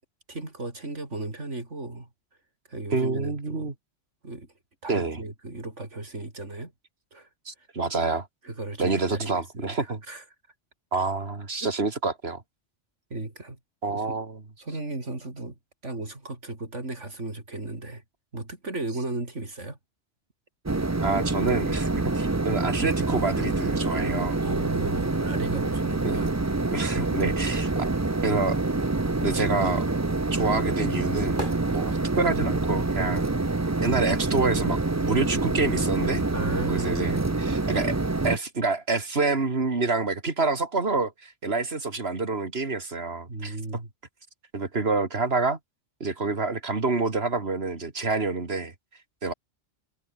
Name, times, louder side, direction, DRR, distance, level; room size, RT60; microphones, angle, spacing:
voice 1, 0.3-2.1 2.7-3.7 4.2-4.5 4.8-6.7 7.1-7.3 8.4-10.2 11.6-11.7 13.1-13.6 13.9-14.2 14.6-15.5 15.8-18.0 18.3-19.8 24.4-26.3 36.3-37.0 43.3-43.9, right 2 dB, 85° right, 5.0 m, -35 dB
voice 2, 2.9-3.7 4.9-5.2 7.5-8.3 8.8-10.0 10.9-12.4 13.8-14.4 21.0-21.9 22.1-24.4 26.0-26.2 26.7-27.8 28.2-28.6 29.2-29.9 30.3-31.4 31.7-33.2 33.8-36.2 36.7-38.0 38.2-43.6 44.5-45.6 46.0-48.7 49.2-49.3, right 3 dB, 60° right, 2.9 m, -27 dB
sound 1, 20.7-38.4, right 2 dB, 15° right, 0.7 m, -26 dB
sound 2, 29.6-34.6 34.9-36.5 36.7-36.8, right 1 dB, 45° right, 8.4 m, -42 dB
omnidirectional pair, 1.2 m